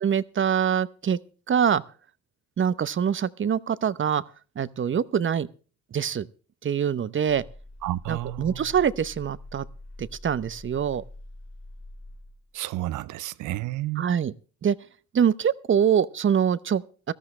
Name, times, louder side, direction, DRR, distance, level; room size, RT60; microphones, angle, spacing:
voice 1, 0.0-1.2 1.5-1.8 2.6-4.2 4.6-5.5 5.9-6.3 6.6-7.4 8.1-9.7 10.0-11.0 14.0-14.3 14.6-14.7 15.1-17.1, right 8 dB, 40° right, 0.8 m, -24 dB
sound 1, 7.3-12.6, left 1 dB, 55° left, 4.9 m, -45 dB
voice 2, 7.8-8.7 12.5-14.1, right 15 dB, 85° right, 0.7 m, -31 dB
18.0 x 13.0 x 3.2 m
cardioid pair, 90°, 30 cm